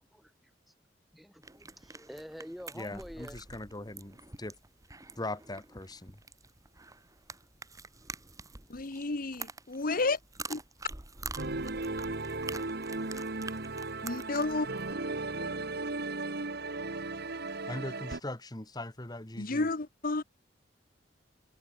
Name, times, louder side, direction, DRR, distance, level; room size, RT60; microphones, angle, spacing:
voice 1, 1.1-3.4, equal, ahead, 3.7 m, -46 dB
sound 1, 1.4-14.9, right 3 dB, 20° right, 2.2 m, -46 dB
voice 2, 2.8-4.5 5.2-6.1 17.7-19.7, left 2 dB, 20° left, 2.0 m, -40 dB
voice 3, 8.7-10.2 10.5-10.6 14.0-14.7 19.4-20.2, left 3 dB, 50° left, 1.2 m, -31 dB
sound 2, 11.4-18.2, right 2 dB, 60° right, 2.1 m, -36 dB
head